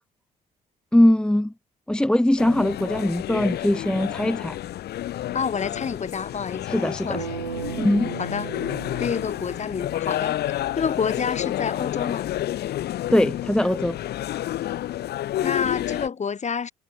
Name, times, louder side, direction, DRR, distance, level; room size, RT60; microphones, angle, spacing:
voice 1, 0.9-1.5 1.9-4.6 6.7-7.2 7.8-8.1 13.1-14.0, left 1 dB, 5° left, 0.8 m, -21 dB
sound 1, 2.4-16.1, left 13 dB, 55° left, 2.4 m, -30 dB
voice 2, 5.3-7.3 8.2-8.5 9.0-10.4 10.7-12.3 15.4-16.7, left 6 dB, 35° left, 4.0 m, -28 dB
sound 2, 7.1-10.2, right 6 dB, 85° right, 1.0 m, -36 dB
figure-of-eight pair, 45°, 20 cm